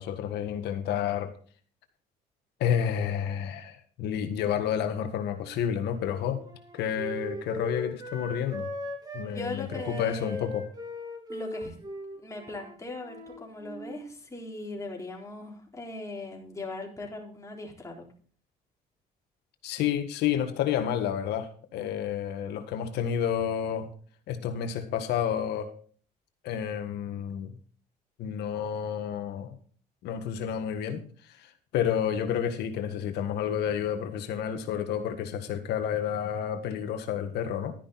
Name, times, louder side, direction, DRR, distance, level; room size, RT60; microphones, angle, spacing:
voice 1, 0.0-1.3 2.6-6.4 6.7-8.7 9.1-10.6 19.6-23.9 24.3-25.7 26.4-27.6 28.2-29.5 30.0-31.0 31.4-31.5 31.7-37.9, left 9 dB, 80° left, 1.6 m, -30 dB
Wind instrument woodwind instrument, 5.3-9.3 9.7-14.1, equal, 25° right, 3.2 m, -39 dB
voice 2, 9.3-10.5 11.3-11.8 12.2-18.1, left 2 dB, 20° left, 3.9 m, -39 dB
12.5 x 10.0 x 4.2 m
cardioid pair, 110°, 17 cm